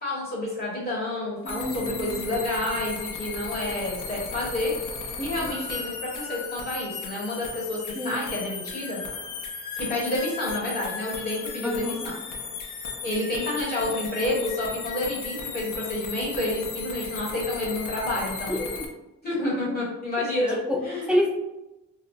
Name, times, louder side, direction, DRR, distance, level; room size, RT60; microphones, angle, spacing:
voice 1, 0.0-4.7 5.2-9.0 9.8-12.1 13.0-18.6 19.2-20.5 20.8-21.1, left 1 dB, 30° left, -6 dB, 1.1 m, -29 dB
voice 2, 1.4-2.2 5.2-5.6 7.9-8.2 11.6-12.1 18.5-18.8 19.4-19.8 20.5-20.8 21.1-21.3, equal, 5° right, -2 dB, 0.5 m, -28 dB
sound 1, 1.5-18.9, left 5 dB, 90° left, 0.6 m, -36 dB
2.6 x 2.0 x 3.7 m, 0.98 s
wide cardioid pair, 135°, 30 cm